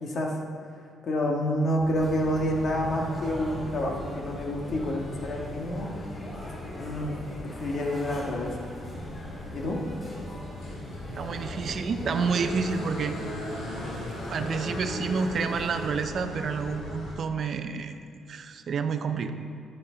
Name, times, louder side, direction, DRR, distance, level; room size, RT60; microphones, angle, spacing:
voice 1, 0.0-0.3 1.0-5.9 6.7-7.2 7.4-8.6 9.5-9.8, equal, 60° left, 0 dB, 1.7 m, -28 dB
sound 1, 1.8-17.1, left 1 dB, 85° left, 2.7 m, -39 dB
sound 2, 2.0-15.9, equal, 30° left, 2.9 m, -41 dB
voice 2, 11.2-13.2 14.3-18.0 18.3-19.3, right 5 dB, 55° right, 8 dB, 0.6 m, -29 dB
11.0 x 9.1 x 3.9 m, 2.3 s
cardioid pair, 90°, 0 cm